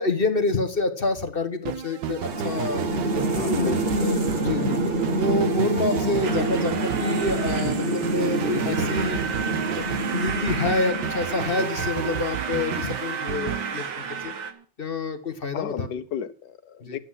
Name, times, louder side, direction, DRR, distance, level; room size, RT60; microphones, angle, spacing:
voice 1, 0.0-3.5 4.0-4.9 5.2-9.2 9.7-14.3 14.8-15.9 16.8-17.0, left 3 dB, 35° left, 1.2 m, -27 dB
sound 1, 1.6-14.6, right 9 dB, 70° right, 1.4 m, -33 dB
sound 2, 2.2-11.6, right 2 dB, 35° right, 1.4 m, -27 dB
voice 2, 3.3-4.1 15.5-17.0, left 8 dB, 70° left, 1.5 m, -32 dB
sound 3, 6.2-14.5, right 6 dB, 90° right, 2.2 m, -33 dB
12.0 x 8.9 x 7.4 m
omnidirectional pair, 2.0 m